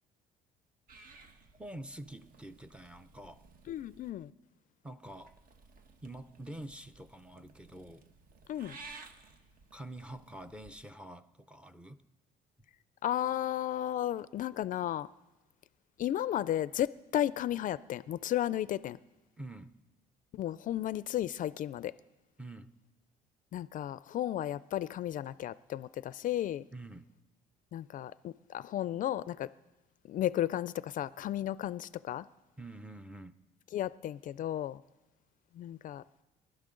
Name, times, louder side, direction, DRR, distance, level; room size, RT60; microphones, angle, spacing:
Purr / Meow, 0.9-4.1 5.1-10.7, right 3 dB, 55° right, 1.2 m, -56 dB
voice 1, 1.6-3.5 4.8-5.4 6.0-8.1 9.7-12.0 19.4-19.8 22.4-22.8 26.7-27.1 32.6-33.4, right 1 dB, 5° right, 0.6 m, -46 dB
voice 2, 3.7-4.3 8.5-8.8 13.0-15.1 16.0-19.0 20.3-21.9 23.5-26.7 27.7-29.5 30.0-32.3 33.7-34.8 35.5-36.0, left 12 dB, 50° left, 0.4 m, -34 dB
24.5 x 12.0 x 3.8 m
cardioid pair, 110°, 17 cm